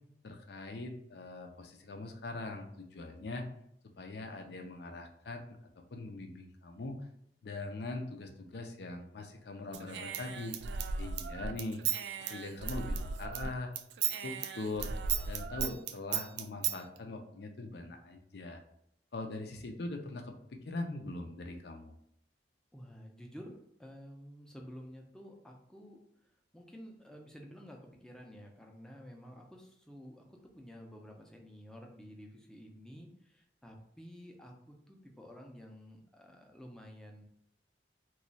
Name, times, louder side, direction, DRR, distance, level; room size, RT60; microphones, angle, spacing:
voice 1, 0.2-3.5 4.0-5.4 5.9-7.0 7.4-10.5 11.0-11.8 12.3-13.7 14.0-14.9 15.3-18.6 19.1-21.9, left 2 dB, 65° left, 4 dB, 0.5 m, -42 dB
Human voice / Scissors, 9.7-13.5 13.8-16.8, right 7 dB, 65° right, 0.3 m, -36 dB
voice 2, 22.7-26.0 26.5-37.2, equal, 5° left, 0 dB, 0.5 m, -51 dB
3.0 x 2.3 x 4.0 m, 0.73 s
head